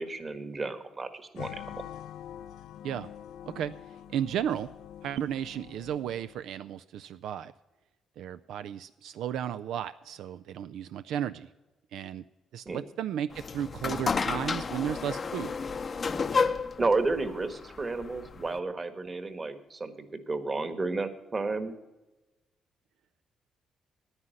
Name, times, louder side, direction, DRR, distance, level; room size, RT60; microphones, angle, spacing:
voice 1, 0.0-1.8 12.6-12.8 16.1-16.2 16.8-21.8, right 3 dB, 30° right, 10 dB, 1.4 m, -32 dB
sound 1, 1.3-6.5, left 10 dB, 85° left, 0.5 m, -45 dB
voice 2, 4.1-4.7 5.0-7.5 8.2-11.5 11.9-12.2 12.5-15.5, right 9 dB, 80° right, 13 dB, 0.3 m, -34 dB
sound 2, 13.3-18.6, left 5 dB, 40° left, 0.6 m, -31 dB
9.7 x 9.6 x 7.7 m, 1.1 s
cardioid pair, 90°, 0 cm